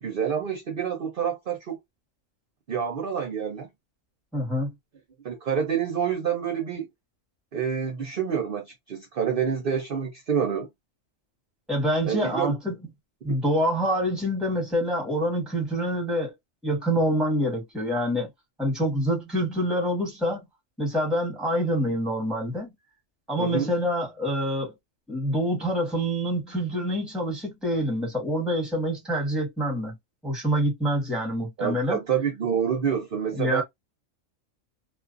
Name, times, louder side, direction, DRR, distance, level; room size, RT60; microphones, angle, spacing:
voice 1, 0.0-1.8 2.7-3.7 5.2-6.9 7.5-10.7 12.0-12.5 23.4-23.7 31.6-33.6, right 7 dB, 55° right, 0.7 m, -27 dB
voice 2, 4.3-4.7 11.7-12.7 13.2-16.3 16.6-18.3 18.6-20.4 20.8-22.7 23.3-24.7 25.1-30.0 30.2-32.0 33.4-33.6, equal, ahead, 1.2 m, -26 dB
2.5 x 2.4 x 2.5 m
omnidirectional pair, 1.4 m